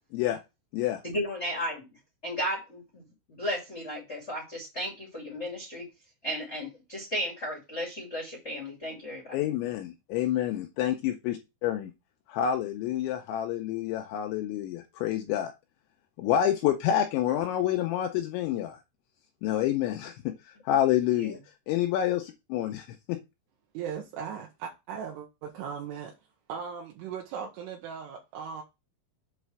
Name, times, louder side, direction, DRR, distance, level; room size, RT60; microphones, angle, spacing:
voice 1, 1.0-1.9 2.2-3.0 3.3-5.8 6.2-9.4 21.2-21.4, equal, 55° left, 0.7 m, -34 dB
voice 2, 9.3-11.4 11.6-11.9 12.3-15.5 16.2-18.8 19.4-21.4 21.7-23.2, left 11 dB, 90° left, 2.6 m, -28 dB
voice 3, 23.7-26.1 26.5-28.6, right 7 dB, 75° right, 3.4 m, -38 dB
8.2 x 3.1 x 6.1 m
omnidirectional pair, 5.9 m